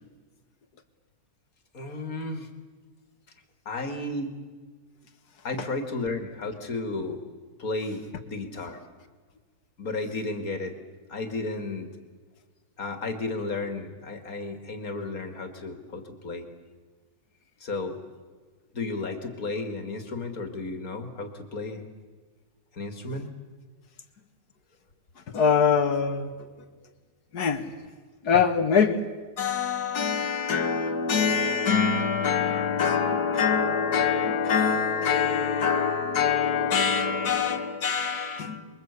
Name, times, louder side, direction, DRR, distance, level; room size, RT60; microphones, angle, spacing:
voice 1, 1.7-2.5 3.7-4.3 5.4-7.2 7.6-8.8 9.8-10.7 11.1-11.9 12.8-16.4 17.6-18.0 18.7-21.8 22.7-23.3, left 3 dB, 65° left, 6 dB, 2.7 m, -33 dB
voice 2, 25.3-26.3 27.3-27.7 28.2-29.1 29.4-38.7, left 6 dB, 80° left, 9 dB, 2.1 m, -24 dB
28.0 x 22.5 x 8.3 m, 1.4 s
omnidirectional pair, 1.6 m